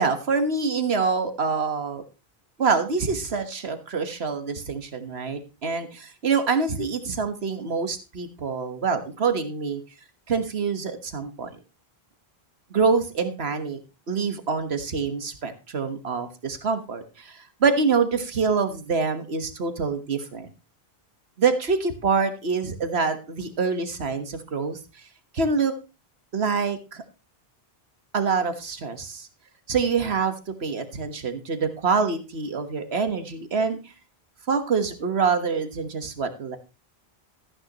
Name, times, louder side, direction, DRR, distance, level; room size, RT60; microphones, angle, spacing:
voice 1, 0.0-2.0 2.6-9.8 10.3-11.5 12.7-13.8 14.1-20.5 21.4-24.8 25.3-25.7 26.3-27.0 28.1-29.3 29.7-33.8 34.5-36.6, right 5 dB, 85° right, 8 dB, 1.7 m, -25 dB
14.5 x 9.7 x 3.0 m, 0.30 s
omnidirectional pair, 1.0 m